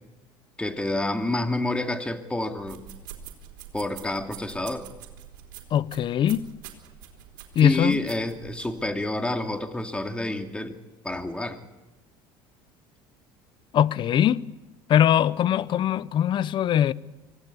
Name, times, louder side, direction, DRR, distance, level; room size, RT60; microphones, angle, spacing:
voice 1, 0.6-2.8 3.7-4.9 7.6-10.7 11.0-11.6, left 1 dB, 10° left, 2.6 m, -28 dB
sound 1, 2.6-8.8, right 10 dB, 90° right, 3.7 m, -45 dB
voice 2, 5.7-6.4 7.6-8.0 13.7-14.4 14.9-16.9, left 10 dB, 50° left, 0.8 m, -21 dB
25.5 x 17.5 x 8.4 m
supercardioid pair, 90°, 11 cm